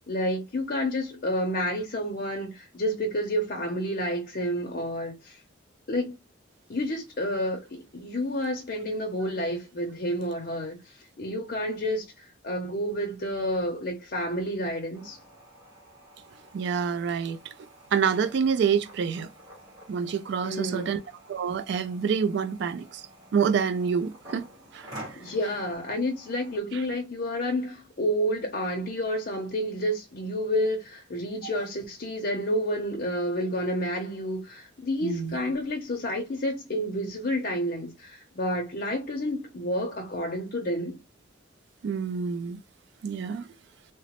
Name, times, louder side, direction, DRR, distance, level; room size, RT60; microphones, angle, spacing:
voice 1, 0.1-5.4 5.9-6.2 6.7-15.2 20.4-21.0 25.2-41.0, equal, 45° left, 0.6 m, -30 dB
sound 1, 14.9-26.6, right 1 dB, 20° right, 1.7 m, -49 dB
voice 2, 16.5-17.5 17.9-19.3 19.9-21.0 21.3-23.0 23.3-24.4 24.7-24.9 26.7-26.8 35.0-35.4 41.8-42.6 43.0-43.5, right 6 dB, 60° right, 0.3 m, -27 dB
2.9 x 2.0 x 2.9 m
head